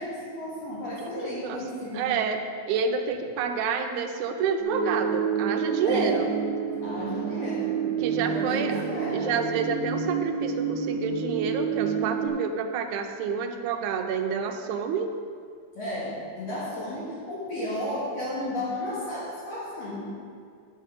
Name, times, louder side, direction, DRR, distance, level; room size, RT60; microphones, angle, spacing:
voice 1, 0.0-2.2 5.8-6.2 6.8-7.8 8.3-9.3 15.8-20.1, left 1 dB, 60° left, -8 dB, 2.7 m, -33 dB
voice 2, 1.2-1.6 1.9-2.4 2.7-6.3 8.0-8.8 9.1-15.1, right 6 dB, 90° right, 5 dB, 2.1 m, -28 dB
sound 1, 4.6-12.3, right 6 dB, 65° right, 0.8 m, -28 dB
9.2 x 6.5 x 5.1 m, 2.2 s
omnidirectional pair, 3.4 m